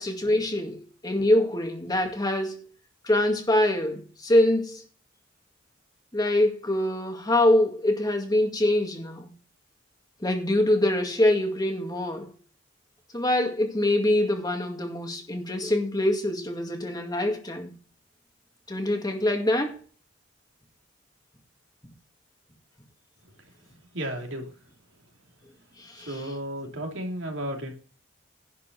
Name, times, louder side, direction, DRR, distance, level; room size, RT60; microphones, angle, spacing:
voice 1, 0.0-2.7 3.0-4.8 6.1-9.3 10.2-12.3 13.1-17.7 18.7-19.8 25.8-26.2, left 1 dB, 20° left, 2.1 m, -24 dB
voice 2, 23.9-24.5 26.0-27.7, right 1 dB, 70° right, 3.1 m, -33 dB
11.0 x 5.6 x 6.8 m
head